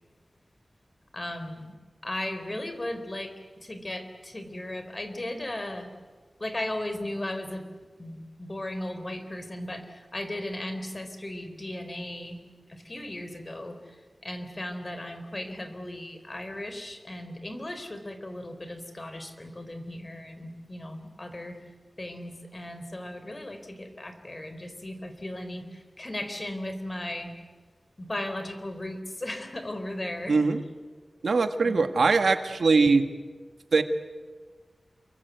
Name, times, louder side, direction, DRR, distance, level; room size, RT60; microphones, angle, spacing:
voice 1, 1.1-1.7 2.0-5.9 6.4-21.7 22.0-27.3 28.0-30.4 31.6-31.8, left 1 dB, 30° left, 8 dB, 3.8 m, -36 dB
voice 2, 30.3-30.6 31.2-33.1 33.7-33.8, right 4 dB, 85° right, 8 dB, 1.6 m, -21 dB
28.5 x 23.0 x 8.2 m, 1.4 s
wide cardioid pair, 85°, 0 cm